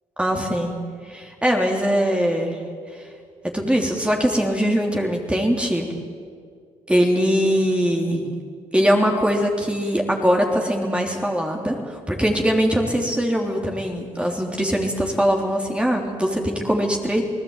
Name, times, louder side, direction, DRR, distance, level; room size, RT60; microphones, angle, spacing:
voice 1, 0.2-0.7 1.0-2.6 2.9-3.1 3.4-5.9 6.9-8.4 8.7-17.2, equal, 10° right, 1 dB, 3.4 m, -21 dB
28.5 x 18.0 x 9.0 m, 2.1 s
cardioid pair, 75°, 13 cm